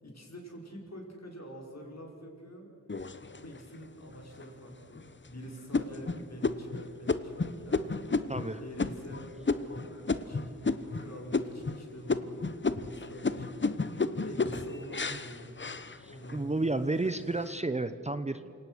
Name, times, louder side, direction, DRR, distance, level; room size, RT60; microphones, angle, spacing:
voice 1, 0.0-2.7 3.3-8.3 8.6-12.3 12.7-15.6 16.1-16.9, equal, 50° left, 0 dB, 5.3 m, -46 dB
sound 1, 2.9-3.8 4.3-4.4 4.9-5.3 5.7-11.0 11.3-11.8 12.1-16.4 16.9-17.4, left 3 dB, 35° left, 1.0 m, -32 dB
voice 2, 8.3-8.6 13.8-14.0 15.1-15.2 16.0-18.5, right 2 dB, 20° right, 11 dB, 0.7 m, -32 dB
28.0 x 18.0 x 6.3 m, 2.7 s
wide cardioid pair, 60°, 34 cm